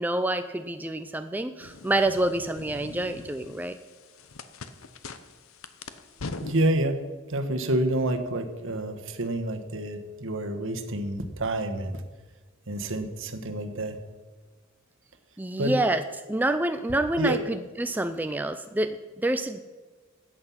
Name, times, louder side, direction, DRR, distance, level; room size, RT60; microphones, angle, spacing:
voice 1, 0.0-3.8 15.4-16.0 16.3-19.6, right 1 dB, 10° right, 8 dB, 0.4 m, -27 dB
sound 1, 1.6-6.7, left 3 dB, 70° left, 0.8 m, -42 dB
voice 2, 6.4-7.0 7.3-12.0 12.7-14.0 15.6-15.8 17.2-17.4, right 1 dB, 65° right, 7 dB, 1.3 m, -28 dB
14.0 x 8.9 x 5.7 m, 1.3 s
head